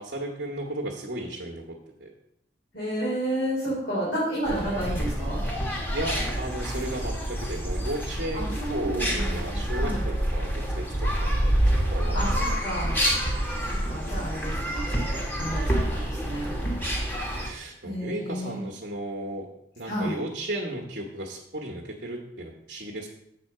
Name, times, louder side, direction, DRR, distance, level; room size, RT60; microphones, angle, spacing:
voice 1, 0.0-1.6 2.0-2.1 5.9-7.1 7.4-10.5 11.2-11.5 11.9-12.2 17.4-19.5 19.8-23.1, right 1 dB, 65° right, -2 dB, 1.2 m, -34 dB
voice 2, 2.7-5.4 8.3-10.0 12.1-12.3 12.6-13.0 13.9-16.5 17.8-18.6 19.8-20.2, right 1 dB, 75° left, -8 dB, 3.4 m, -31 dB
sound 1, 4.5-17.5, equal, 10° left, 1.2 m, -27 dB
7.6 x 4.2 x 6.6 m, 0.75 s
head